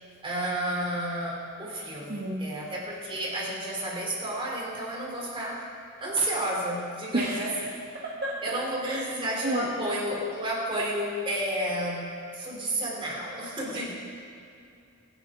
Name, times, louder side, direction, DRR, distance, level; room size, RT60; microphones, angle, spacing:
voice 1, 0.2-5.7 6.0-7.5 8.4-12.1 12.3-13.9, right 1 dB, 25° right, -4 dB, 3.2 m, -31 dB
voice 2, 2.0-2.6 7.1-7.4 8.0-8.4 8.8-9.0 9.4-9.7, right 1 dB, 50° right, -5 dB, 1.5 m, -30 dB
24.0 x 8.8 x 3.7 m, 2.5 s
head